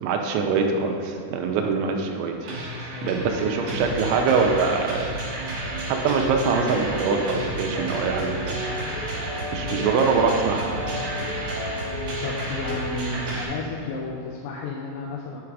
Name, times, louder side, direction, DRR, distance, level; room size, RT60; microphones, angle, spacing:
voice 1, 0.0-2.3 3.0-5.2 5.8-8.6 9.5-10.8, right 5 dB, 80° right, 3 dB, 2.9 m, -23 dB
sound 1, 2.4-13.4, right 1 dB, 65° right, 1.6 m, -32 dB
sound 2, 5.6-13.0, left 2 dB, 60° left, 2.5 m, -35 dB
voice 2, 12.2-15.4, left 3 dB, 80° left, -2 dB, 2.6 m, -33 dB
9.5 x 3.7 x 4.6 m, 2.4 s
omnidirectional pair, 5.5 m